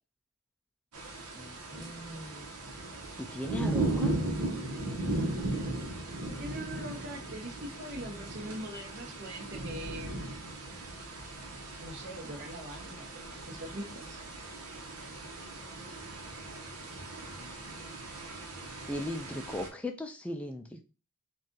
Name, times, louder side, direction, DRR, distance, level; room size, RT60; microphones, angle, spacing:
sound 1, 0.9-19.7, right 2 dB, 85° right, 1.0 m, -37 dB
voice 1, 1.4-2.5 3.2-4.1 18.9-20.8, left 1 dB, 5° left, 4 dB, 0.3 m, -38 dB
voice 2, 6.4-10.1 11.8-13.1 13.5-14.2, right 1 dB, 50° right, 3 dB, 1.0 m, -42 dB
4.1 x 2.5 x 3.7 m, 0.32 s
head